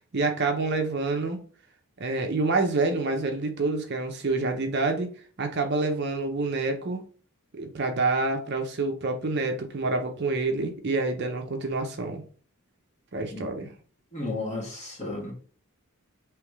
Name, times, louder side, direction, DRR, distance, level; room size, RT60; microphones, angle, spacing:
voice 1, 0.1-1.4 2.0-5.1 5.4-7.0 7.5-12.2 13.1-13.7, right 3 dB, 50° right, 0.7 m, -27 dB
voice 2, 14.1-15.3, left 2 dB, 30° left, 1.5 m, -33 dB
3.4 x 3.1 x 4.6 m
head